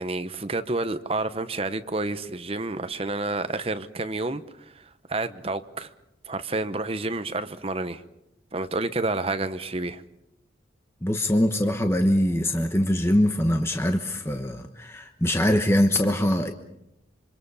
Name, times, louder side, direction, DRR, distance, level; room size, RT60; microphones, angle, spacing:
voice 1, 0.0-4.4 5.1-5.9 6.3-8.0 8.5-10.0, right 2 dB, 30° right, 10 dB, 1.0 m, -29 dB
voice 2, 11.0-16.5, left 1 dB, 15° left, 5 dB, 1.1 m, -23 dB
27.0 x 25.0 x 5.6 m, 0.85 s
head